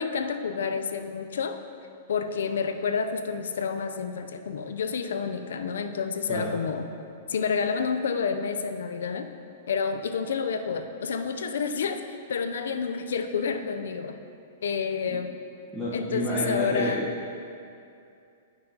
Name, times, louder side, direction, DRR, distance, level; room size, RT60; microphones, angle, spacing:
voice 1, 0.0-1.6 2.1-6.9 7.3-9.3 9.7-12.0 12.3-14.2 14.6-15.4 15.9-17.0, left 6 dB, 85° left, 7 dB, 0.5 m, -29 dB
voice 2, 15.7-17.0, equal, 10° right, -10 dB, 1.1 m, -29 dB
11.0 x 5.7 x 2.9 m, 2.5 s
hypercardioid pair, 150°, 0 cm